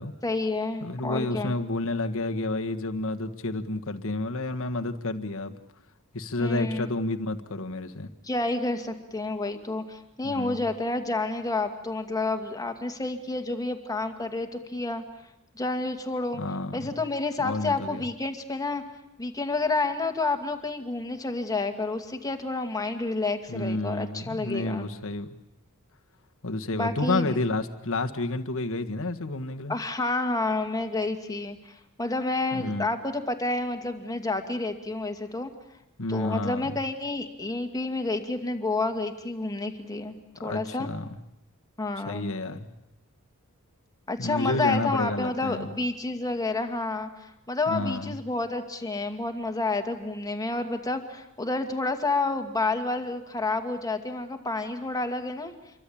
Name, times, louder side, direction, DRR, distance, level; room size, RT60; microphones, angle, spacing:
voice 1, 0.2-1.5 6.4-6.9 8.2-15.0 15.6-16.4 16.7-18.8 19.2-24.9 26.7-27.3 29.7-31.7 32.0-35.5 36.1-40.1 40.4-40.9 41.8-42.3 44.1-55.5, left 2 dB, 15° left, 6 dB, 2.2 m, -29 dB
voice 2, 0.8-5.6 6.1-8.1 10.2-10.6 16.3-16.9 17.4-18.0 23.5-25.3 26.4-29.8 32.5-32.9 36.0-36.8 40.4-41.1 42.1-42.7 44.2-45.7 47.7-48.2, left 2 dB, 65° left, 6 dB, 1.7 m, -30 dB
27.5 x 23.5 x 8.7 m, 0.86 s
head